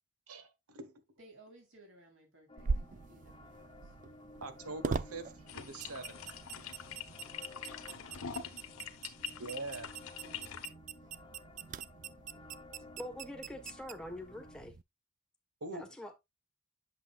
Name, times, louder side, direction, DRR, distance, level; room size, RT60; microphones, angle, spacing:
voice 1, 0.3-0.9 4.4-6.2 9.4-9.9 15.6-16.0, right 2 dB, 85° right, 1.2 m, -43 dB
voice 2, 1.2-3.6 10.0-10.5, right 1 dB, 60° right, 3.7 m, -59 dB
sound 1, 2.5-14.6, left 2 dB, 25° left, 0.7 m, -56 dB
sound 2, 2.6-14.8, right 4 dB, 35° right, 0.3 m, -43 dB
sound 3, 5.5-10.7, left 7 dB, 75° left, 1.1 m, -45 dB
voice 3, 13.0-14.7 15.7-16.2, left 1 dB, 5° left, 1.2 m, -44 dB
8.3 x 7.0 x 2.4 m
head